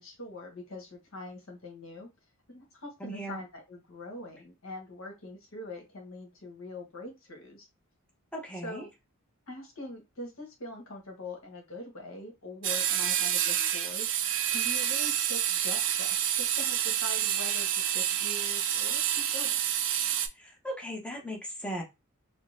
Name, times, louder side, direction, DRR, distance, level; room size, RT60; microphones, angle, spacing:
voice 1, 0.0-2.1 2.5-7.7 8.6-8.9 9.5-14.1 14.5-19.6, left 2 dB, 65° left, 1 dB, 1.3 m, -43 dB
voice 2, 3.0-3.4 8.3-8.8 20.4-21.8, equal, 5° left, 0 dB, 0.8 m, -37 dB
sound 1, 12.6-20.3, right 10 dB, 60° right, 0.4 m, -28 dB
3.7 x 2.1 x 2.5 m, 0.23 s
head